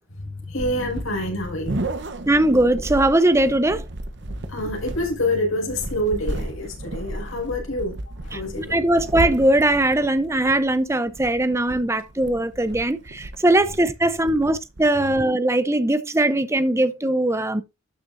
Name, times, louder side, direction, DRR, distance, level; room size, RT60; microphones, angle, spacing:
voice 1, 0.2-1.8 4.3-8.8, left 1 dB, 80° left, 5.4 m, -27 dB
sound 1, 0.6-15.3, right 1 dB, 55° right, 0.9 m, -34 dB
voice 2, 2.3-3.8 8.3-17.6, right 1 dB, 15° right, 0.7 m, -20 dB
12.5 x 6.9 x 2.6 m
head